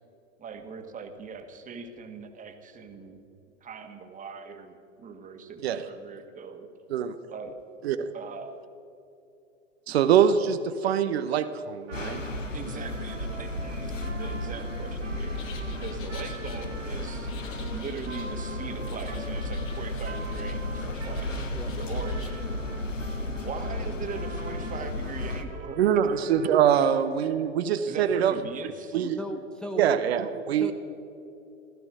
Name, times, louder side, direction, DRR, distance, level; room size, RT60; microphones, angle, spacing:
voice 1, 0.4-3.2 3.6-6.7 7.3-7.5 8.1-8.5 9.9-10.0 12.5-15.4 15.6-17.3 17.7-21.5 21.7-22.5 23.3-26.1 26.7-26.9 27.8-29.0, right 5 dB, 20° right, 6 dB, 1.6 m, -40 dB
voice 2, 9.9-12.2 25.8-28.3 28.9-29.2 29.8-30.7, right 8 dB, 55° right, 10 dB, 0.9 m, -24 dB
Trumpet, 11.8-23.6 24.1-27.1, right 4 dB, 70° right, 4.0 m, -46 dB
sound 1, 11.9-25.4, left 1 dB, 90° left, 1.3 m, -33 dB
sound 2, 15.3-16.7 17.3-18.3 18.9-20.6 20.9-22.4, left 7 dB, 35° left, 2.2 m, -49 dB
voice 3, 29.2-29.9 30.5-30.7, left 1 dB, ahead, 3 dB, 0.5 m, -36 dB
16.5 x 14.5 x 6.1 m, 2.7 s
figure-of-eight pair, 95°, 37 cm